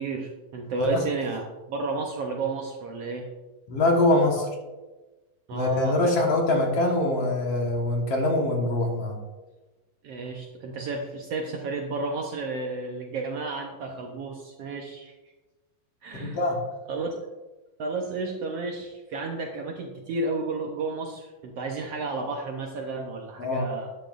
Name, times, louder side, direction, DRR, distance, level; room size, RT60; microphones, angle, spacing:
voice 1, 0.0-3.3 5.5-6.0 10.0-15.1 16.0-16.4 16.9-17.1 17.8-23.9, right 3 dB, 90° right, 1 dB, 1.3 m, -32 dB
voice 2, 3.7-4.5 5.5-9.2 16.2-16.6 23.4-23.6, left 1 dB, 55° left, 0 dB, 2.0 m, -23 dB
13.0 x 11.0 x 2.5 m, 1.2 s
omnidirectional pair, 4.0 m